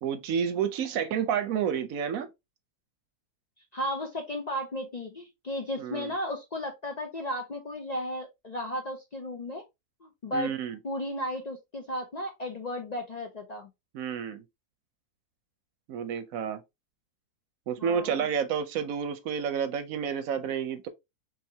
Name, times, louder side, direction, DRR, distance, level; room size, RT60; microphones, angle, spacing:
voice 1, 0.0-2.3 5.8-6.1 10.3-10.8 13.9-14.4 15.9-16.6 17.7-20.9, right 7 dB, 65° right, 0.9 m, -30 dB
voice 2, 3.7-9.6 10.0-10.5 10.8-13.7 17.8-18.3, left 1 dB, 75° left, 0.3 m, -34 dB
4.9 x 2.8 x 2.7 m
omnidirectional pair, 1.7 m